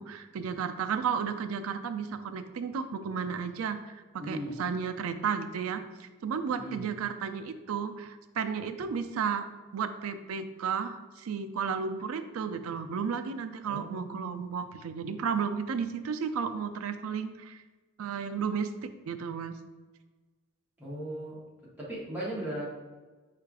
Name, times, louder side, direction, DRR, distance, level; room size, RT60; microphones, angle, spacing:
voice 1, 0.0-9.5 9.7-17.6 18.0-19.6, right 6 dB, 85° right, 9 dB, 0.4 m, -33 dB
voice 2, 4.2-4.5 6.5-6.8 13.7-14.4 20.8-21.4 21.8-22.8, right 1 dB, 10° right, -7 dB, 1.1 m, -37 dB
4.6 x 2.5 x 4.6 m, 1.3 s
head